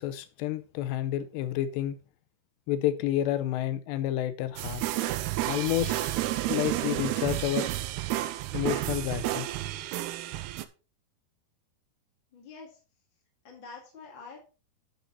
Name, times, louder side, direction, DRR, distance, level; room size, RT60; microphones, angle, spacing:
voice 1, 0.0-2.0 2.7-4.8 5.5-6.0 6.5-7.7 8.5-9.5, left 12 dB, 85° left, 2.8 m, -29 dB
sound 1, 4.6-10.6, right 15 dB, 80° right, 2.5 m, -31 dB
voice 2, 12.3-12.8 13.4-14.4, left 4 dB, 35° left, 2.3 m, -46 dB
10.0 x 7.1 x 4.0 m
omnidirectional pair, 4.9 m